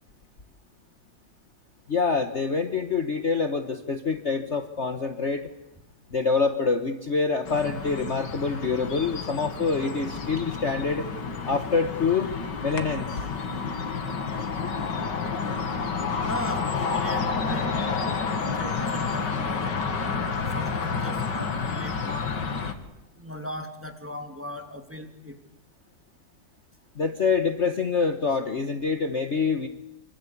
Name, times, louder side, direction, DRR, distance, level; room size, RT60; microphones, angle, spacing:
voice 1, 1.9-5.5 6.1-11.1 11.5-12.3 12.6-13.1 27.0-29.7, left 4 dB, 40° left, 7 dB, 1.5 m, -26 dB
sound 1, 7.5-22.7, left 5 dB, 65° left, 2.7 m, -30 dB
voice 2, 16.2-19.8 20.4-22.3 23.2-25.3, left 1 dB, 5° right, 5 dB, 2.6 m, -38 dB
26.5 x 25.0 x 8.5 m, 0.85 s
omnidirectional pair, 2.1 m